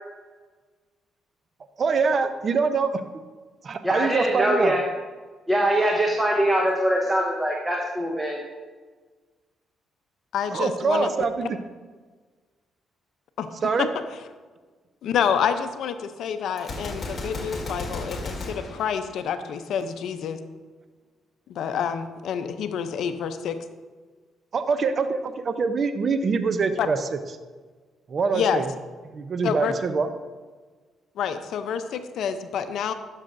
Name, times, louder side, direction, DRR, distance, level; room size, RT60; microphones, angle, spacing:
voice 1, 1.8-2.9 3.6-4.8 10.5-11.6 13.6-13.9 24.5-27.0 28.1-28.7 29.1-30.1, right 5 dB, 50° right, 9 dB, 0.5 m, -24 dB
voice 2, 3.8-4.8 5.5-8.4, equal, 10° right, -1 dB, 1.0 m, -23 dB
voice 3, 10.3-11.1 13.4-13.5 13.8-13.9 15.0-20.4 21.5-23.6 26.8-26.9 28.3-28.6 29.4-29.7 31.2-32.9, left 8 dB, 75° left, 9 dB, 0.5 m, -28 dB
Gunshot gunfire, 16.6-19.7, left 2 dB, 40° left, 1.6 m, -34 dB
11.5 x 6.2 x 2.6 m, 1.4 s
cardioid pair, 90°, 0 cm